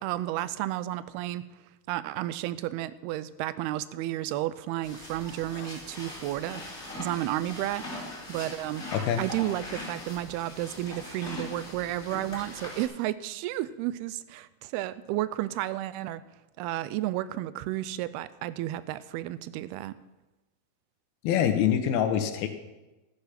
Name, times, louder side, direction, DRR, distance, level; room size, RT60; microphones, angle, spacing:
voice 1, 0.0-1.4 1.9-6.6 7.0-8.8 9.2-16.2 16.6-19.9, right 14 dB, 90° right, 16 dB, 2.5 m, -32 dB
sound 1, 4.8-12.8, left 1 dB, 20° left, 3.2 m, -41 dB
voice 2, 21.2-22.5, left 9 dB, 80° left, 8 dB, 2.8 m, -25 dB
13.5 x 10.0 x 5.8 m, 1.1 s
omnidirectional pair, 4.4 m